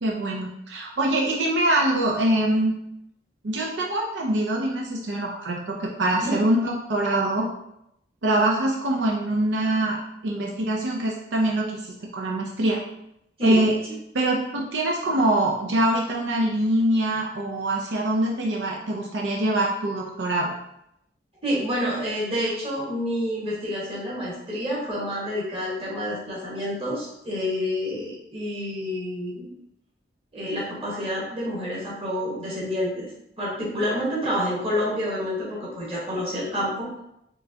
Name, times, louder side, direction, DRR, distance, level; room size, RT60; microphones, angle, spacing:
voice 1, 0.0-2.7 3.4-7.5 8.2-10.0 10.2-12.8 13.4-13.8 14.1-20.5, right 1 dB, 85° right, -1 dB, 0.6 m, -24 dB
voice 2, 21.4-29.5 30.3-33.1 33.4-36.9, equal, 30° right, -6 dB, 1.5 m, -28 dB
4.5 x 3.2 x 2.8 m, 0.81 s
head